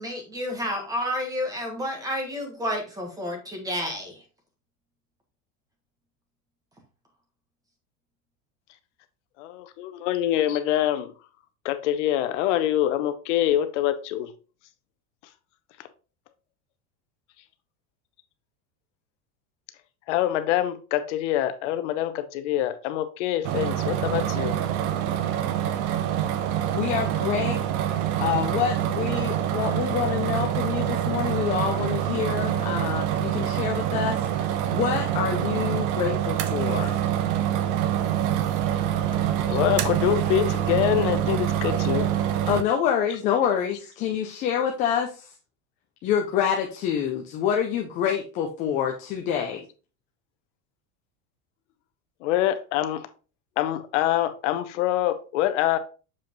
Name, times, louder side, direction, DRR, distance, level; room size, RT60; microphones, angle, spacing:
voice 1, 0.0-4.2, equal, 10° right, 1.3 m, -30 dB
voice 2, 9.4-11.1 11.6-14.3 20.1-24.6 39.4-42.1 52.2-53.1 53.6-55.8, left 12 dB, 65° left, 0.8 m, -25 dB
sound 1, 23.4-42.6, right 11 dB, 60° right, 0.8 m, -26 dB
voice 3, 26.7-27.6 28.2-37.0 42.4-45.3 46.0-49.7, left 8 dB, 20° left, 0.3 m, -27 dB
7.2 x 4.8 x 3.0 m
supercardioid pair, 170°, 39 cm